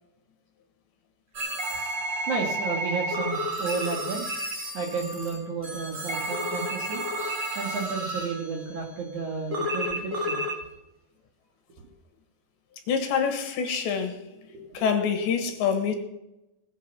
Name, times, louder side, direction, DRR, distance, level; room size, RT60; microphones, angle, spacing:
sound 1, 1.3-8.6 9.5-10.6, equal, 80° right, 0.9 m, -31 dB
voice 1, 2.3-4.3 4.7-7.0 7.6-10.4 14.4-14.9, right 5 dB, 50° right, 2.5 m, -32 dB
voice 2, 12.9-14.2 14.8-15.9, left 6 dB, 70° left, 3.5 m, -26 dB
19.0 x 8.8 x 5.9 m
omnidirectional pair, 5.8 m